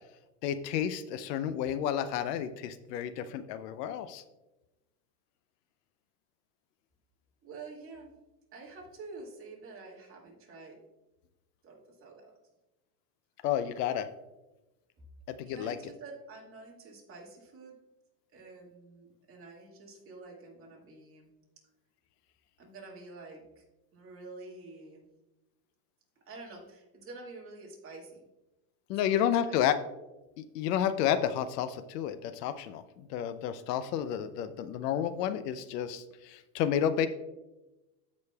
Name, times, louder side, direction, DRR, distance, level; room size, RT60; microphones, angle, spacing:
voice 1, 0.4-4.2 13.4-14.1 15.3-15.8 28.9-29.8 30.4-37.1, left 9 dB, 70° left, 12 dB, 0.7 m, -31 dB
voice 2, 7.4-8.1 8.5-10.8 11.6-12.3 15.4-17.8 18.3-21.3 22.6-23.6 23.9-25.1 26.3-28.2 28.9-29.7, right 3 dB, 25° right, -2 dB, 2.0 m, -48 dB
14.5 x 5.2 x 2.3 m, 1.0 s
supercardioid pair, 135°, 50 cm